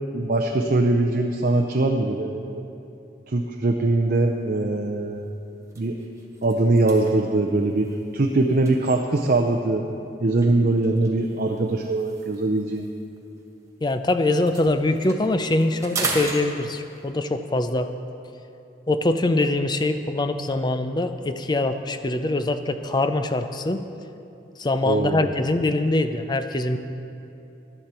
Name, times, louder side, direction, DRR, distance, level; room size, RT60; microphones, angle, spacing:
voice 1, 0.1-2.6 3.3-5.3 5.8-5.9 6.4-7.9 8.1-9.9 10.2-12.9 24.8-25.3, right 2 dB, 50° right, 3 dB, 0.6 m, -22 dB
sound 1, 4.5-4.7 5.1-5.3 5.6-9.6 10.4-14.0 14.3-17.1, right 3 dB, 15° right, 1.3 m, -36 dB
voice 2, 13.8-17.9 18.9-23.8 24.6-26.8, left 2 dB, 25° left, 9 dB, 0.5 m, -23 dB
14.5 x 11.0 x 4.4 m, 2.7 s
head